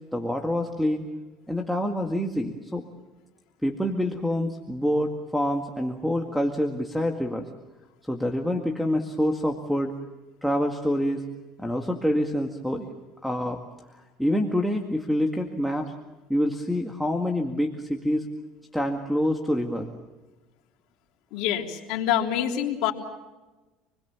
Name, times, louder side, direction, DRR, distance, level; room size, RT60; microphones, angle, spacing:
voice 1, 0.1-1.1 1.5-2.9 3.6-7.5 8.1-9.9 10.4-11.2 11.6-12.9 13.2-13.6 13.9-15.9 16.3-18.3 18.7-19.9, equal, ahead, 1 dB, 2.0 m, -26 dB
voice 2, 21.3-22.9, left 10 dB, 70° left, 1 dB, 3.4 m, -26 dB
28.0 x 21.0 x 7.2 m, 1.1 s
supercardioid pair, 110°, 0 cm